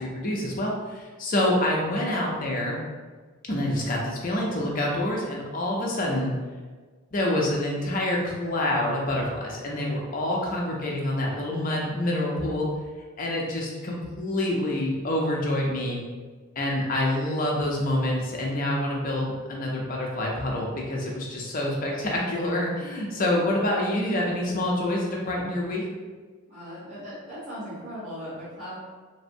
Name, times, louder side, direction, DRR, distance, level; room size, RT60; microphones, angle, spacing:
voice 1, 0.0-2.8 3.5-6.3 7.1-12.7 13.2-16.0 16.6-25.8, left 1 dB, 40° left, -2 dB, 0.5 m, -27 dB
voice 2, 26.5-28.8, equal, 30° right, -16 dB, 1.0 m, -38 dB
3.3 x 2.0 x 2.6 m, 1.4 s
head